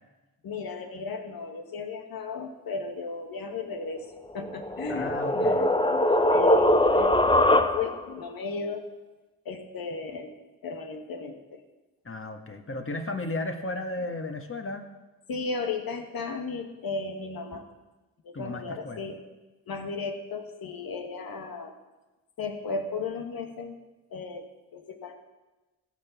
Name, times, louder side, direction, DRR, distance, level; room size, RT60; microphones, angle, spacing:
voice 1, 0.4-8.9 9.4-10.3 10.6-11.6 15.3-17.6 18.2-19.2 19.7-21.7 22.4-23.8 24.1-25.1, left 4 dB, 70° left, 5 dB, 1.5 m, -35 dB
sound 1, 4.4-8.1, left 1 dB, 15° left, 0.8 m, -22 dB
voice 2, 4.9-5.7 12.0-14.9 18.3-19.0, left 2 dB, 35° left, 5 dB, 1.7 m, -34 dB
15.0 x 6.0 x 7.1 m, 1.1 s
supercardioid pair, 40°, 36 cm